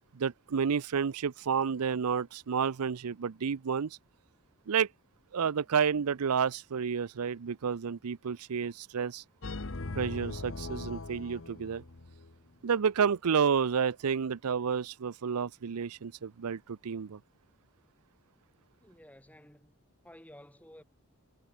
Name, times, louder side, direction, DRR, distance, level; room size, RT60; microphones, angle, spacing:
voice 1, 0.1-4.0 4.7-4.9 5.3-9.2 10.0-11.8 12.6-17.2, right 6 dB, 90° right, 0.5 m, -30 dB
sound 1, 9.4-12.4, left 2 dB, 60° left, 1.1 m, -40 dB
voice 2, 18.8-20.8, left 1 dB, 5° left, 2.6 m, -54 dB
head